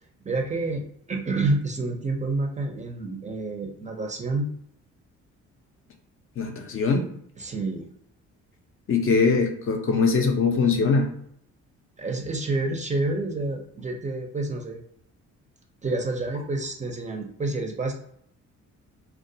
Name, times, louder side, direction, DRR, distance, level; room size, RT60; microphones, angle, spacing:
voice 1, 0.2-4.5 7.4-7.9 12.0-14.8 15.8-17.9, right 2 dB, 25° right, 1 dB, 0.5 m, -28 dB
voice 2, 6.4-7.0 8.9-11.1, left 4 dB, 45° left, 3 dB, 0.5 m, -22 dB
2.2 x 2.2 x 2.6 m, 0.67 s
cardioid pair, 90°, 30 cm